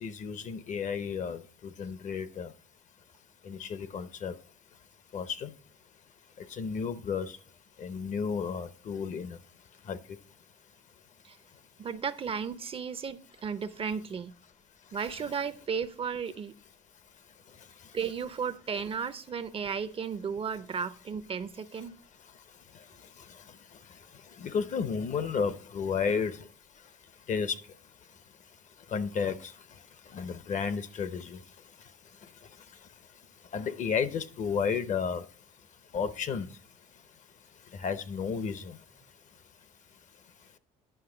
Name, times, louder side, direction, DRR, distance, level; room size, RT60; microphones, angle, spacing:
voice 1, 0.0-1.4 1.8-2.5 3.5-4.3 5.1-5.5 6.6-7.3 7.8-9.4 9.9-10.0 24.4-26.4 27.3-27.6 28.9-29.3 30.1-31.4 33.5-35.2 35.9-36.5 37.8-38.8, left 6 dB, 45° left, 0.7 m, -32 dB
voice 2, 11.8-14.3 14.9-16.5 17.9-22.0, right 6 dB, 35° right, 0.5 m, -34 dB
10.0 x 5.5 x 3.8 m
cardioid pair, 110°, 17 cm